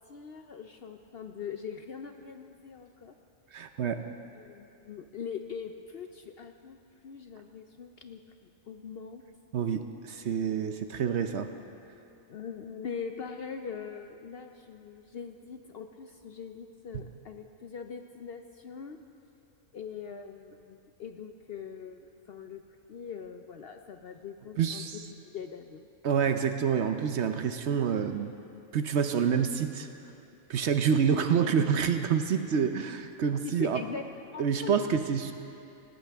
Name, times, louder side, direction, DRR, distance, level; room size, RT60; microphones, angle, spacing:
voice 1, 0.1-3.1 4.4-6.8 7.0-9.2 12.3-19.0 19.7-22.6 22.9-25.9 33.4-34.0 34.3-34.9, left 6 dB, 60° left, 6 dB, 0.7 m, -42 dB
voice 2, 3.5-4.0 9.5-11.5 16.9-17.0 24.6-25.0 26.0-28.3 28.7-29.9 30.5-33.8 34.4-35.3, right 7 dB, 60° right, 8 dB, 0.9 m, -27 dB
18.5 x 17.5 x 3.5 m, 2.7 s
omnidirectional pair, 1.4 m